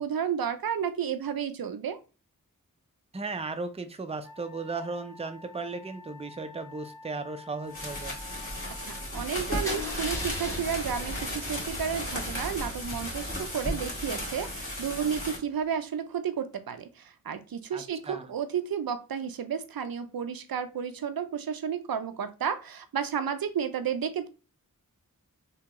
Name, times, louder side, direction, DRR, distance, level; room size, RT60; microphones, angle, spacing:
voice 1, 0.0-2.0 8.9-24.3, right 7 dB, 90° right, 10 dB, 0.5 m, -32 dB
voice 2, 3.1-8.2 17.7-18.3, right 3 dB, 20° right, 8 dB, 0.4 m, -36 dB
Wind instrument woodwind instrument, 4.2-9.1, left 3 dB, 70° left, 0.8 m, -49 dB
sound 1, 7.7-15.4, left 1 dB, 40° left, 1.9 m, -35 dB
Car / Engine starting / Idling, 9.6-15.5, left 1 dB, 10° left, 1.1 m, -40 dB
3.5 x 2.8 x 2.9 m, 0.32 s
wide cardioid pair, 50°, 35 cm